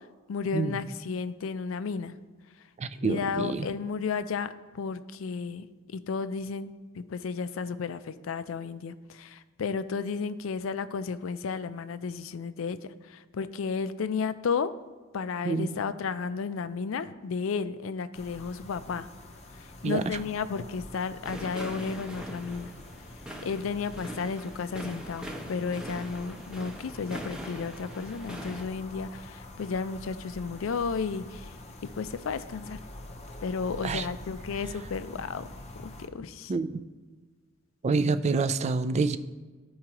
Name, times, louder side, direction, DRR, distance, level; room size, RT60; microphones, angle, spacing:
voice 1, 0.3-2.2 3.0-5.7 5.9-14.7 15.1-19.1 19.8-22.7 23.4-31.5 31.9-32.8 33.4-35.5 35.8-36.5, left 5 dB, 70° left, 13 dB, 0.4 m, -33 dB
voice 2, 2.8-3.7 15.4-15.7 19.8-20.2 33.8-34.1 36.5-36.7 37.8-39.2, right 4 dB, 30° right, 10 dB, 0.3 m, -27 dB
sound 1, 18.1-36.1, left 1 dB, 30° left, 0.6 m, -46 dB
sound 2, 21.2-28.7, right 1 dB, 5° right, 0.7 m, -41 dB
13.5 x 4.7 x 2.9 m, 1.4 s
head